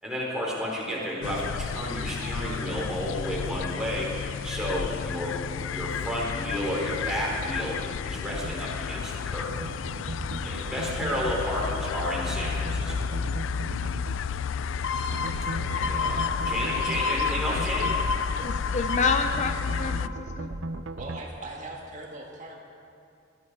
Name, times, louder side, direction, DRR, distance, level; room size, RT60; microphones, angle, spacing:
voice 1, 0.0-4.1 4.4-7.8 8.0-9.5 10.4-13.1 15.5-18.0, equal, 5° right, -5 dB, 4.1 m, -32 dB
sound 1, 1.2-20.1, left 6 dB, 85° left, 0.4 m, -32 dB
sound 2, 8.3-8.5 9.5-11.4 12.3-14.2 15.1-17.0 17.5-18.0 19.3-21.2, right 2 dB, 85° right, 0.8 m, -37 dB
sound 3, 14.8-20.3 20.8-20.9, left 4 dB, 70° left, 0.9 m, -31 dB
voice 2, 16.4-16.8 17.3-17.7 18.4-20.5, left 4 dB, 40° left, 7 dB, 0.6 m, -30 dB
voice 3, 21.0-22.6, right 2 dB, 40° right, -1 dB, 1.9 m, -40 dB
20.0 x 14.5 x 4.7 m, 2.6 s
head